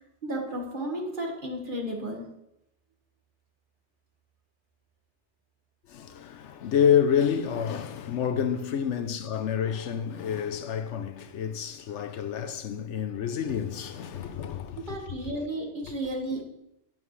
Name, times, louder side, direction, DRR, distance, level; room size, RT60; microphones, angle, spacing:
voice 1, 0.2-2.3 14.8-16.5, right 1 dB, 45° right, 1.8 m, -33 dB
voice 2, 5.9-15.3, left 8 dB, 80° left, 1.0 m, -28 dB
11.0 x 9.1 x 3.2 m
omnidirectional pair, 1.2 m